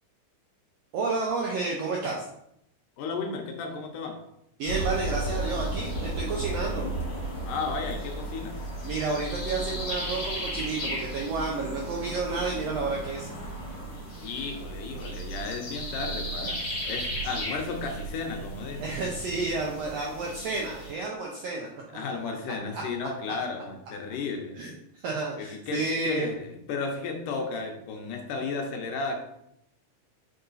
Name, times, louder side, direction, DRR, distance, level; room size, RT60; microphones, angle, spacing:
voice 1, 0.9-2.3 4.6-6.9 8.8-13.3 18.8-21.7 22.7-22.8 24.5-26.3, right 3 dB, 75° right, -1 dB, 1.5 m, -31 dB
voice 2, 3.0-4.2 7.5-8.6 14.2-18.9 21.9-24.6 25.4-29.2, left 4 dB, 80° left, 3 dB, 2.4 m, -34 dB
sound 1, 4.7-20.9, right 1 dB, 40° left, 2.6 m, -34 dB
6.5 x 4.0 x 4.0 m, 0.77 s
omnidirectional pair, 3.8 m